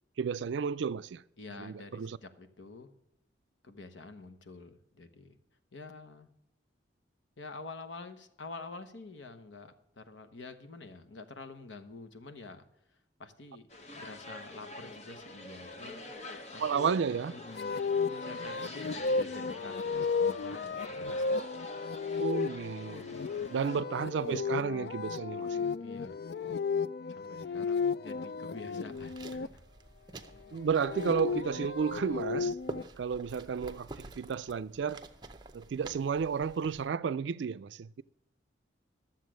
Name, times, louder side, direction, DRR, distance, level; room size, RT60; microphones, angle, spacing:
voice 1, 0.2-1.2 1.6-2.2 16.6-17.3 22.2-23.2 23.5-25.7 30.5-32.5 33.0-33.9 34.2-35.0 35.5-38.0, right 6 dB, 75° right, 0.4 m, -32 dB
voice 2, 1.4-2.9 3.6-5.4 5.7-6.3 7.4-12.6 13.2-13.7 14.0-16.0 16.5-17.0 17.3-21.3 23.1-23.4 25.8-26.1 27.1-29.6, left 3 dB, 85° left, 1.1 m, -48 dB
sound 1, 13.7-23.8, left 2 dB, 35° left, 0.9 m, -46 dB
sound 2, 17.6-29.5 30.6-32.8, left 4 dB, 60° left, 0.3 m, -34 dB
sound 3, 28.8-36.9, right 2 dB, 25° right, 0.7 m, -49 dB
12.5 x 7.4 x 6.2 m
head